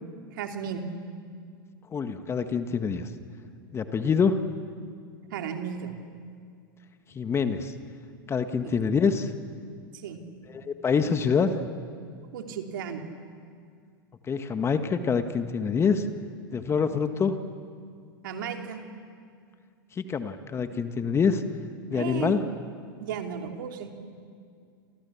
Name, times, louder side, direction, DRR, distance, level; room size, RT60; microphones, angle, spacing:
voice 1, 0.3-0.8 5.3-5.9 8.6-8.9 10.0-10.2 12.3-13.0 18.2-18.8 21.9-22.4 23.0-23.9, right 8 dB, 65° right, 4 dB, 3.2 m, -34 dB
voice 2, 1.9-3.1 3.7-4.4 7.1-7.7 8.3-9.3 10.5-11.5 14.3-16.1 16.5-17.4 20.0-21.4 21.9-22.4, left 6 dB, 20° left, 8 dB, 1.7 m, -25 dB
28.5 x 27.5 x 7.3 m, 2.2 s
hypercardioid pair, 95°, 12 cm